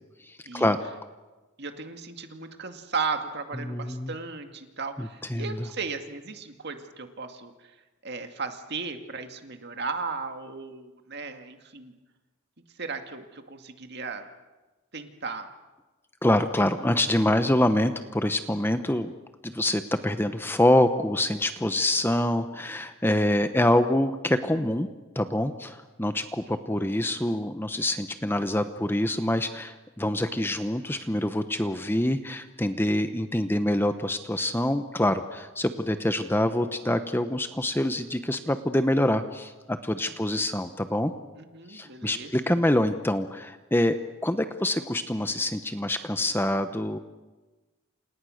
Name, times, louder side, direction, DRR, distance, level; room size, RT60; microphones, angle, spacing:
voice 1, 0.2-0.8 3.6-4.1 5.0-5.7 16.2-19.1 19.4-24.9 25.1-41.1 41.7-44.0 44.2-47.0, left 1 dB, 10° left, 9 dB, 0.9 m, -25 dB
voice 2, 1.6-7.7 8.0-11.9 12.8-14.3 14.9-15.5 26.5-27.0 40.1-40.4 41.4-42.6, right 4 dB, 50° right, 6 dB, 2.2 m, -36 dB
29.0 x 28.0 x 6.5 m, 1.2 s
head